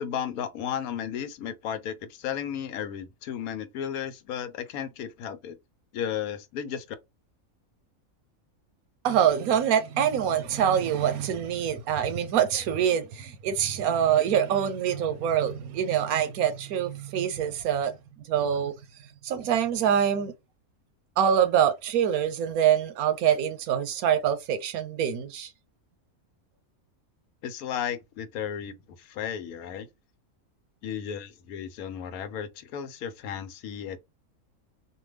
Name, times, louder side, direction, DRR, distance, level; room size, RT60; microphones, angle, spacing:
voice 1, 0.0-5.6 5.9-6.8 27.4-29.9 30.8-34.0, left 8 dB, 85° left, 1.1 m, -34 dB
voice 2, 9.0-18.0 18.3-18.7 19.2-20.3 21.2-25.5, right 9 dB, 85° right, 1.1 m, -25 dB
2.5 x 2.3 x 3.2 m
omnidirectional pair, 1.5 m